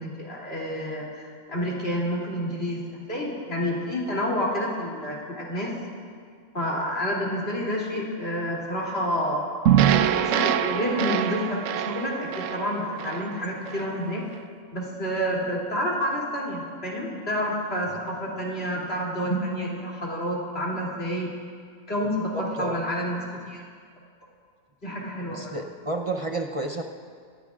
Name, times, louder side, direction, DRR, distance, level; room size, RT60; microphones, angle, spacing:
voice 1, 0.0-5.8 6.5-9.4 9.9-14.2 14.7-21.3 21.9-23.6 24.8-25.5, equal, 45° left, -5 dB, 3.2 m, -29 dB
sound 1, 9.7-14.0, right 10 dB, 70° right, 0.9 m, -24 dB
voice 2, 22.3-22.8 25.3-26.8, right 2 dB, 35° right, 2 dB, 0.6 m, -31 dB
26.0 x 15.0 x 2.5 m, 2.1 s
omnidirectional pair, 1.5 m